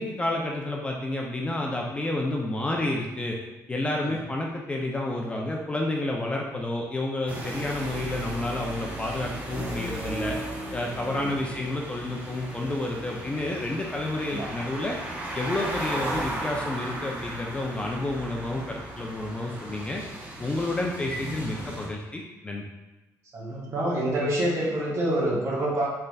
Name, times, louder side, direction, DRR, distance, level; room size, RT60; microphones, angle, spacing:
voice 1, 0.0-3.4 3.7-10.4 10.7-15.0 15.3-20.0 20.4-22.6, left 2 dB, 20° left, -1 dB, 0.4 m, -30 dB
sound 1, 7.3-21.9, right 1 dB, 25° right, 0.6 m, -36 dB
voice 2, 11.0-11.3 14.1-14.5 23.3-25.9, right 1 dB, 45° right, -4 dB, 1.0 m, -27 dB
3.7 x 3.2 x 2.3 m, 1.0 s
cardioid pair, 135°, 6 cm